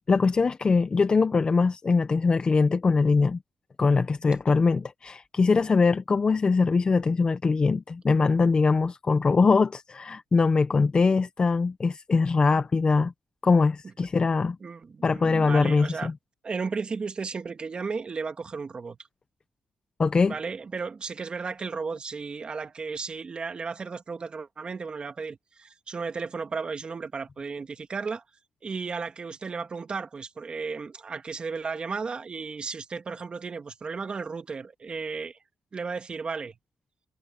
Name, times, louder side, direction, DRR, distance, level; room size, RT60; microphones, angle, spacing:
voice 1, 0.1-3.4 3.8-13.1 13.4-14.6 15.0-16.1 20.0-20.3, left 4 dB, 40° left, 1.2 m, -22 dB
voice 2, 14.6-16.1 16.4-19.0 20.2-28.2 28.6-35.4 35.7-36.6, right 5 dB, 45° right, 2.2 m, -34 dB
cardioid pair, 70°, 2 cm